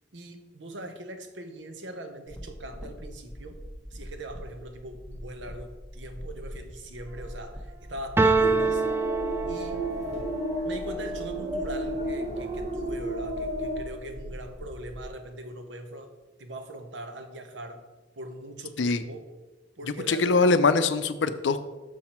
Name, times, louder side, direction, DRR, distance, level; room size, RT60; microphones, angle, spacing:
voice 1, 0.1-3.6 3.9-8.8 9.5-9.9 10.6-16.1 16.4-17.8 18.2-19.3 19.8-20.4, right 1 dB, 75° right, 6 dB, 0.9 m, -41 dB
sound 1, 2.3-15.1, equal, 5° left, 0.8 m, -42 dB
sound 2, 8.2-10.1, right 3 dB, 15° right, 0.3 m, -24 dB
sound 3, 8.4-13.8, right 1 dB, 40° right, 1.1 m, -32 dB
voice 2, 20.1-21.6, left 3 dB, 70° left, 11 dB, 0.5 m, -22 dB
6.3 x 5.9 x 4.3 m, 1.2 s
head